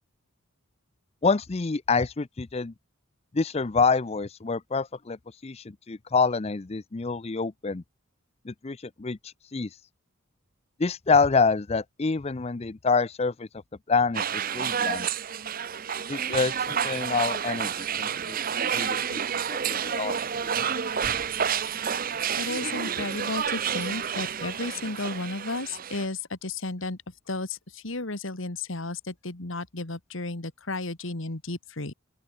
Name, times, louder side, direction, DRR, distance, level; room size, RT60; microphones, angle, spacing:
voice 1, 1.2-2.7 3.3-5.2 5.4-7.8 8.5-9.7 10.8-13.5 13.9-15.1 16.1-18.4 18.7-19.2 19.5-20.1, left 4 dB, 30° left, 0.5 m, -27 dB
sound 1, 14.1-26.1, right 7 dB, 40° right, 0.7 m, -29 dB
voice 2, 22.4-27.0 27.3-31.9, left 2 dB, 65° left, 2.1 m, -33 dB
open air
head